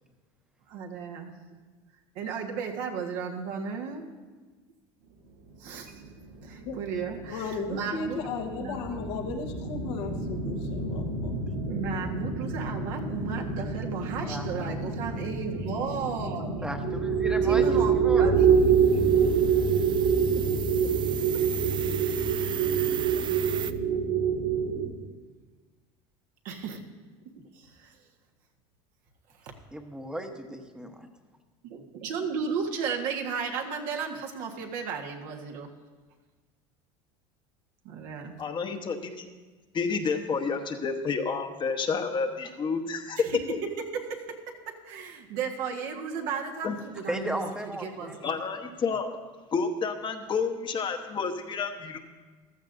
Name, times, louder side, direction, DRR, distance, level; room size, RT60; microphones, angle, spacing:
voice 1, 0.7-1.3 2.1-4.1 5.6-6.0 6.4-8.2 8.6-9.0 11.6-16.6 17.5-19.2 20.3-20.4 22.5-23.1 26.4-26.8 27.6-27.9 31.7-35.7 37.8-38.3 43.9-44.2 44.8-47.4 47.8-48.4, right 6 dB, 65° right, 2 dB, 1.5 m, -34 dB
sound 1, 5.8-24.9, right 6 dB, 85° right, 2.2 m, -27 dB
voice 2, 7.3-11.4, left 4 dB, 80° left, 3 dB, 1.3 m, -35 dB
voice 3, 14.2-14.9 16.6-17.6 17.9-18.3 29.7-31.1 47.1-48.3, right 1 dB, 5° right, 5 dB, 1.1 m, -35 dB
sound 2, 18.4-23.7, right 9 dB, 35° right, 0.4 m, -37 dB
voice 4, 38.4-39.3 39.7-43.6 46.6-46.8 48.2-49.2 49.5-52.0, left 5 dB, 35° left, 5 dB, 1.1 m, -30 dB
14.5 x 12.5 x 2.6 m, 1.3 s
supercardioid pair, 100°, 14 cm